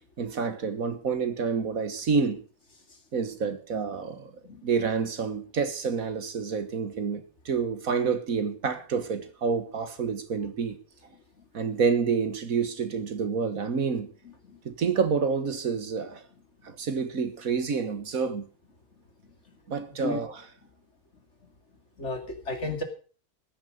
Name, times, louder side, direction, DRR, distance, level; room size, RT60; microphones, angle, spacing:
voice 1, 0.2-2.4 3.1-4.3 4.6-10.8 11.5-14.1 14.7-16.2 16.6-18.5 19.7-20.4, right 5 dB, 65° right, 1.9 m, -28 dB
voice 2, 22.0-22.8, left 2 dB, 50° left, 2.8 m, -32 dB
15.5 x 10.5 x 6.7 m
omnidirectional pair, 1.6 m